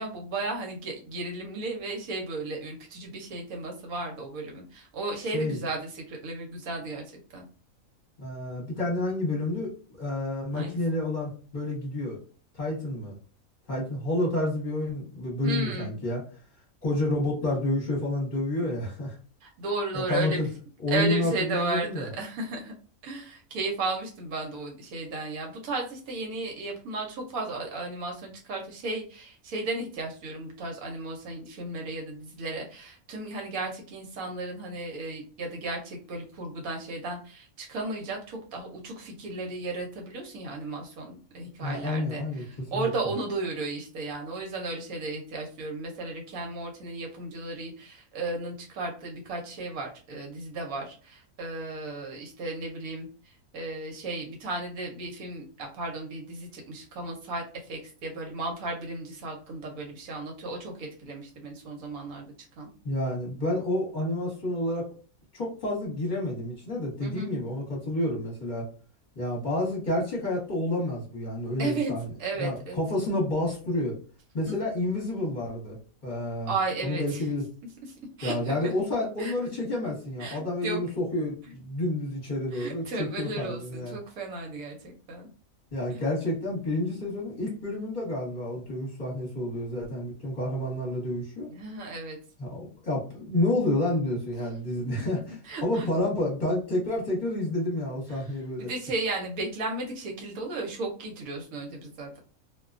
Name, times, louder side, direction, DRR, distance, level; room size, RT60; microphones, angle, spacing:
voice 1, 0.0-7.4 10.5-10.8 15.4-15.9 19.4-20.4 20.9-22.7 23.0-62.3 62.6-62.7 67.0-67.3 71.6-71.9 72.2-72.8 76.4-77.2 78.2-78.7 79.2-79.3 80.2-80.8 82.5-85.3 85.9-86.0 91.5-92.2 95.5-95.9 98.1-98.3 98.6-102.2, right 3 dB, 75° right, 1 dB, 1.0 m, -34 dB
voice 2, 5.2-5.6 8.2-9.7 10.0-12.2 12.5-13.2 13.7-16.2 16.8-19.2 19.9-20.5 20.8-22.1 41.6-42.9 62.8-64.9 65.3-68.7 69.1-72.1 72.4-74.0 74.3-75.8 76.0-76.5 76.8-77.4 78.2-84.0 85.7-91.5 92.4-98.7, left 1 dB, 35° left, -4 dB, 1.0 m, -29 dB
2.4 x 2.2 x 2.4 m, 0.39 s
omnidirectional pair, 1.5 m